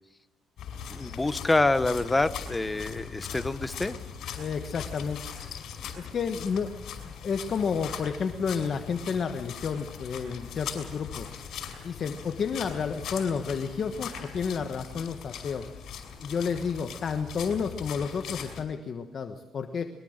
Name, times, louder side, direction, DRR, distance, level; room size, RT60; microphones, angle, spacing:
sound 1, 0.6-18.6, left 7 dB, 65° left, 5.4 m, -40 dB
voice 1, 0.9-4.0, left 2 dB, 15° left, 12 dB, 0.9 m, -26 dB
voice 2, 4.4-5.2 6.0-6.7 7.2-11.3 11.8-19.8, left 6 dB, 40° left, 6 dB, 1.3 m, -31 dB
22.5 x 22.5 x 6.6 m, 1.1 s
cardioid pair, 145°, 0 cm